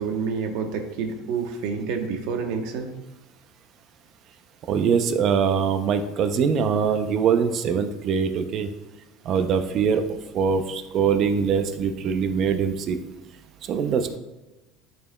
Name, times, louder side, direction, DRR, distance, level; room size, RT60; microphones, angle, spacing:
voice 1, 0.0-2.9, right 5 dB, 70° right, 4 dB, 1.0 m, -28 dB
voice 2, 4.7-8.7 9.2-10.0 10.3-13.0 13.7-14.2, right 6 dB, 45° right, 8 dB, 0.6 m, -23 dB
11.5 x 4.6 x 2.3 m, 1.0 s
cardioid pair, 140°, 0 cm